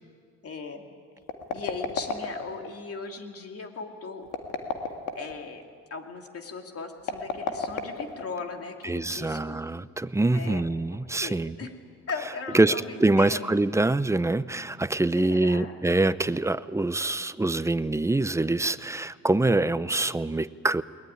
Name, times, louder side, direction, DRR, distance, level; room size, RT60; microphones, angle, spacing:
voice 1, 0.4-0.9 1.5-4.3 5.1-5.6 5.9-9.6 10.3-10.6 11.2-11.7 12.1-13.5 15.1-15.8, left 4 dB, 50° left, 4 dB, 2.7 m, -38 dB
sound 1, 1.2-2.7 4.2-5.4 7.0-8.5, left 5 dB, 85° left, 2.0 m, -32 dB
voice 2, 8.8-11.6 12.5-20.8, right 2 dB, 10° right, 15 dB, 0.6 m, -25 dB
21.5 x 19.0 x 10.0 m, 2.1 s
cardioid pair, 90°, 30 cm